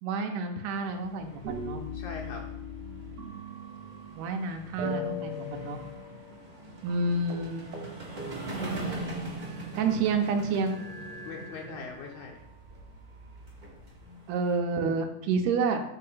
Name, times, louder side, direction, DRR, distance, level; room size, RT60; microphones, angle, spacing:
voice 1, 0.0-1.8 4.2-5.8 6.8-7.8 9.8-10.8 14.3-15.8, right 4 dB, 80° right, 5 dB, 2.2 m, -29 dB
sound 1, 0.8-14.6, right 2 dB, 45° right, 0.6 m, -42 dB
sound 2, 1.4-4.4 4.8-6.6 6.9-7.0 7.3-7.5 7.7-7.9 8.2-9.9 10.6-12.2 12.9-13.9, left 2 dB, 60° right, 2.1 m, -40 dB
voice 2, 1.9-2.5 11.3-12.4 14.0-14.5, left 4 dB, 80° left, 1 dB, 2.0 m, -42 dB
7.0 x 3.4 x 5.5 m, 0.80 s
omnidirectional pair, 3.7 m